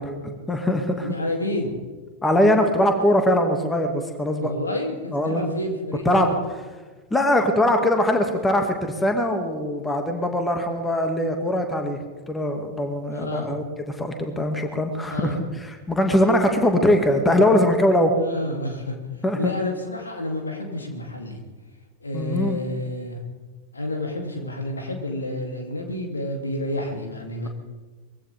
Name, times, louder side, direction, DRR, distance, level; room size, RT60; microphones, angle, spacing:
voice 1, 0.0-1.1 2.2-4.5 5.1-5.5 6.1-6.3 7.1-12.0 12.3-13.6 14.0-18.1 19.2-19.5 22.1-22.6, left 1 dB, 10° left, 4 dB, 2.2 m, -21 dB
voice 2, 1.0-1.7 4.4-6.3 13.1-13.6 15.1-15.4 18.1-19.0 19.4-21.4 22.0-23.2 23.7-27.5, left 1 dB, 75° left, 2 dB, 3.0 m, -29 dB
22.5 x 16.0 x 3.6 m, 1.3 s
figure-of-eight pair, 90°, 0 cm